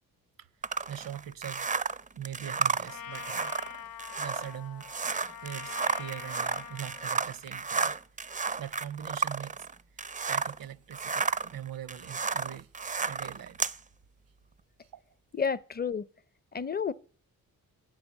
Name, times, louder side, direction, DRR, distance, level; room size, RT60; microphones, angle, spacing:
sound 1, 0.6-10.6 10.9-13.8, right 5 dB, 20° right, 0.4 m, -32 dB
voice 1, 0.9-1.7 2.1-3.5 4.2-4.8 5.4-7.9 8.6-9.6 10.2-12.7 13.1-13.6, right 10 dB, 65° right, 0.7 m, -41 dB
Trumpet, 2.9-7.2, left 9 dB, 70° left, 0.6 m, -44 dB
voice 2, 15.3-16.1 16.5-16.9, left 6 dB, 25° left, 0.6 m, -30 dB
8.9 x 6.3 x 7.1 m
cardioid pair, 65°, 36 cm